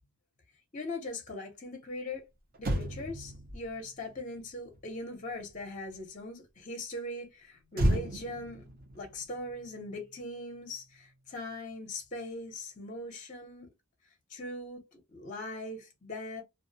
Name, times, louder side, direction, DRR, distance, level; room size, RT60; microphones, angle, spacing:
voice 1, 0.7-2.3 2.6-8.7 8.9-13.7 14.3-16.4, left 2 dB, 35° left, 0.6 m, -40 dB
Motor vehicle (road), 2.1-2.2 2.5-6.1 7.7-10.3 10.6-10.8, right 1 dB, 40° right, 0.6 m, -35 dB
2.4 x 2.0 x 2.6 m
head